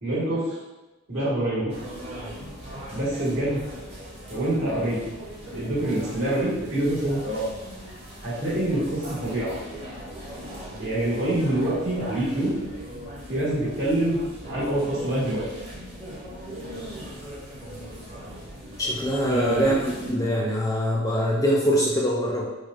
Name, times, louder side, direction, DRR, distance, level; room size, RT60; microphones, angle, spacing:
voice 1, 0.0-0.6 1.1-1.8 2.9-3.6 4.3-5.0 5.5-7.5 8.2-9.6 10.8-12.5 13.3-14.2 14.5-15.4 19.3-19.7, right 1 dB, 65° right, -9 dB, 1.5 m, -25 dB
sound 1, 1.7-20.1, equal, 25° right, 0.8 m, -39 dB
voice 2, 18.8-22.5, equal, 15° left, -4 dB, 0.3 m, -23 dB
4.6 x 2.1 x 2.4 m, 1.1 s
head